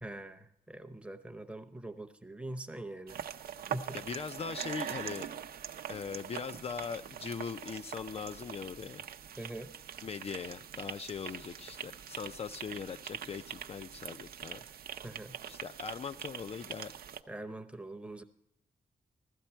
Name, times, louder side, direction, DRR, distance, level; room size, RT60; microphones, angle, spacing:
voice 1, 0.0-3.2 3.6-4.0 9.4-9.7 15.0-15.4 17.3-18.2, right 1 dB, 10° right, 7 dB, 0.7 m, -43 dB
sound 1, 3.1-17.2, right 9 dB, 85° right, 0.6 m, -43 dB
voice 2, 3.9-5.3 5.9-9.1 10.0-14.6 15.5-17.0, left 6 dB, 40° left, 8 dB, 0.4 m, -40 dB
15.5 x 13.0 x 4.4 m, 0.79 s
wide cardioid pair, 150°, 15 cm